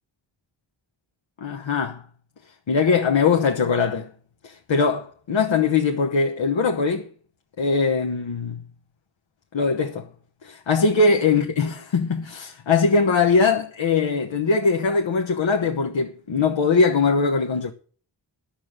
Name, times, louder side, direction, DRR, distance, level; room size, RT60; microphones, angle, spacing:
voice 1, 1.4-2.0 2.7-4.1 4.4-7.1 7.6-8.6 9.5-10.1 10.4-17.7, left 4 dB, 90° left, 1.2 m, -21 dB
12.0 x 6.7 x 9.0 m
wide cardioid pair, 120°, 44 cm